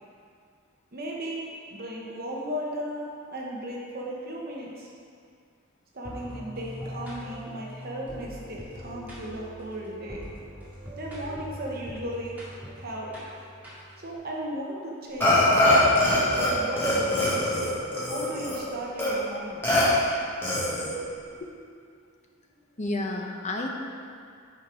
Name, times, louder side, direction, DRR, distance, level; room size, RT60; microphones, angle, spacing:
voice 1, 0.9-4.9 5.9-10.2 11.0-12.4 12.8-13.2 14.0-15.6 16.2-17.5 18.0-19.6, equal, 45° right, -3 dB, 1.0 m, -36 dB
sound 1, 6.0-14.1, equal, 10° right, 2.1 m, -42 dB
Burping eructation, 15.2-16.5 16.8-18.6 19.0-19.1 19.6-19.8 20.4-21.0, left 1 dB, 10° left, 1.7 m, -23 dB
voice 2, 22.8-23.7, left 2 dB, 35° left, 1 dB, 0.8 m, -30 dB
9.5 x 4.5 x 5.0 m, 2.3 s
head